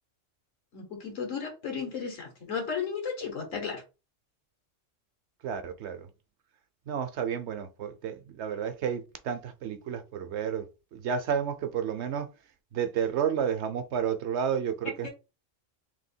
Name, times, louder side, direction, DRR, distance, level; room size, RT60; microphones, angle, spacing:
voice 1, 0.7-3.8 14.8-15.1, left 6 dB, 80° left, 1.7 m, -34 dB
voice 2, 5.4-6.1 6.9-10.7 10.9-12.3 12.7-15.1, right 8 dB, 65° right, 0.9 m, -31 dB
3.4 x 3.0 x 4.3 m
omnidirectional pair, 1.3 m